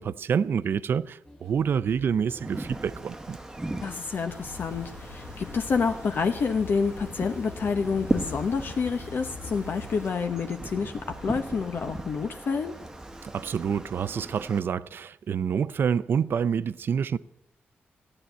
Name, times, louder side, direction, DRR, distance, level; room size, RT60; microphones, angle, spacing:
voice 1, 0.0-3.4 13.2-17.2, right 7 dB, 60° right, 0.5 m, -27 dB
sound 1, 1.2-14.4, equal, 20° left, 1.8 m, -50 dB
Wind, 2.3-14.6, right 2 dB, 15° right, 1.1 m, -38 dB
voice 2, 3.8-12.7, left 5 dB, 55° left, 0.9 m, -28 dB
sound 2, 4.3-10.1, left 4 dB, 80° left, 1.5 m, -43 dB
15.0 x 9.9 x 9.1 m
wide cardioid pair, 165°, 4 cm